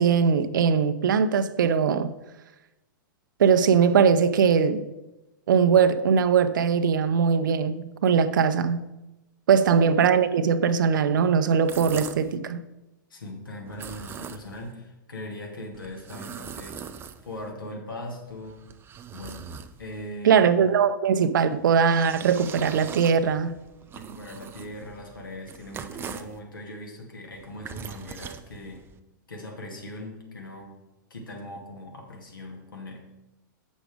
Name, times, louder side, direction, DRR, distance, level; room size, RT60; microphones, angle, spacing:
voice 1, 0.0-2.1 3.4-4.8 5.5-8.9 9.5-12.6 20.2-23.5, right 6 dB, 70° right, 0.7 m, -21 dB
sound 1, 11.5-12.4 13.7-14.7 15.7-17.5 18.2-20.1 21.5-26.4 27.3-29.0, right 7 dB, 20° right, 0.5 m, -41 dB
voice 2, 13.1-16.8 17.2-18.6 19.1-19.5 19.8-20.7 23.9-28.9 29.3-30.7 31.1-33.0, left 1 dB, 85° left, 2.4 m, -40 dB
7.6 x 6.3 x 5.0 m
hypercardioid pair, 110°, 11 cm